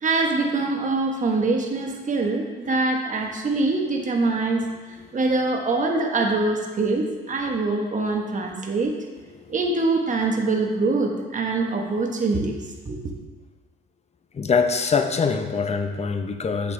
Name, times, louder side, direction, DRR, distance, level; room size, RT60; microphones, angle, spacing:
voice 1, 0.0-4.7 5.1-8.9 9.5-12.5 12.8-13.1, right 3 dB, 40° right, 2 dB, 1.3 m, -24 dB
voice 2, 14.3-16.7, left 5 dB, 35° left, 7 dB, 0.7 m, -24 dB
8.1 x 7.8 x 3.4 m, 1.3 s
cardioid pair, 90°, 20 cm